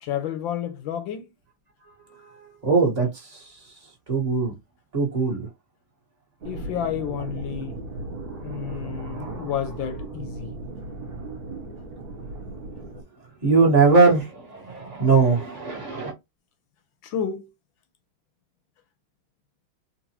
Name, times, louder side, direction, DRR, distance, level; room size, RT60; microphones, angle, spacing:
voice 1, 0.0-1.3 6.4-7.8 8.4-10.6 17.0-17.5, left 9 dB, 75° left, 1.3 m, -30 dB
voice 2, 2.1-3.5 4.1-4.5 4.9-5.5 8.5-9.7 13.4-16.1, right 4 dB, 25° right, 1.0 m, -22 dB
sound 1, 6.4-13.0, right 2 dB, 50° right, 1.4 m, -36 dB
3.9 x 2.5 x 2.9 m
omnidirectional pair, 2.3 m